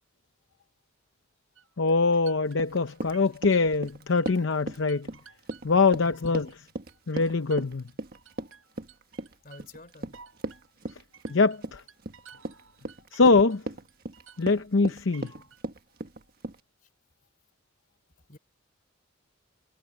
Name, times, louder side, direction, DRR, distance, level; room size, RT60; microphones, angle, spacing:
sound 1, 1.6-4.6 4.9-6.6 6.9-13.6 13.9-15.6, right 7 dB, 85° right, 6.3 m, -54 dB
voice 1, 1.8-5.1 5.6-6.7 7.1-7.8 11.3-11.8 13.1-13.6 14.4-15.3, left 4 dB, 65° left, 0.7 m, -23 dB
Run, 2.5-16.6, right 2 dB, 50° right, 1.5 m, -38 dB
voice 2, 9.4-10.2 18.3-18.4, left 2 dB, 40° left, 3.4 m, -48 dB
head